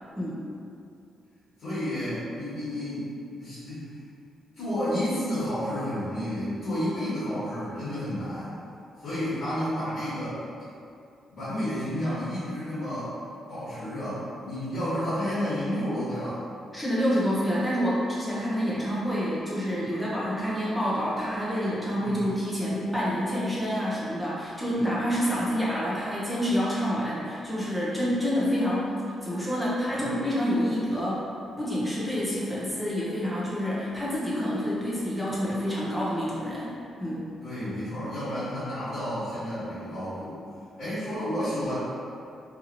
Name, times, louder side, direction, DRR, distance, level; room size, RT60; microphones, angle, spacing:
voice 1, 1.6-3.1 3.4-3.8 4.6-8.6 9.0-10.4 11.3-13.1 13.5-16.4 22.0-22.2 30.0-30.1 37.4-40.4 40.8-41.8, equal, 55° left, -14 dB, 1.4 m, -31 dB
voice 2, 16.7-28.9 29.2-31.2 31.6-36.7 37.0-37.3, equal, ahead, -8 dB, 0.6 m, -28 dB
2.8 x 2.7 x 2.5 m, 2.5 s
cardioid pair, 165°, 0 cm